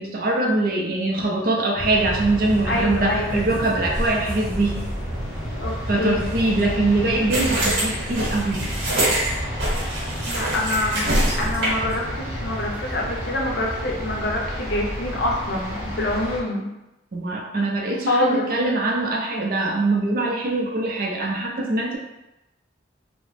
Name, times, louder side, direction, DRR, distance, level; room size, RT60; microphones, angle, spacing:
voice 1, 0.0-4.8 5.9-8.7 17.1-22.0, right 2 dB, 50° right, 0 dB, 0.4 m, -23 dB
sound 1, 1.8-16.4, equal, 5° right, 0.8 m, -30 dB
voice 2, 2.6-3.4 5.6-6.2 10.3-16.7 18.1-18.4, left 2 dB, 60° left, -1 dB, 0.5 m, -25 dB
sound 2, 7.3-11.9, right 1 dB, 65° right, 1.0 m, -24 dB
2.9 x 2.0 x 3.0 m, 0.96 s
head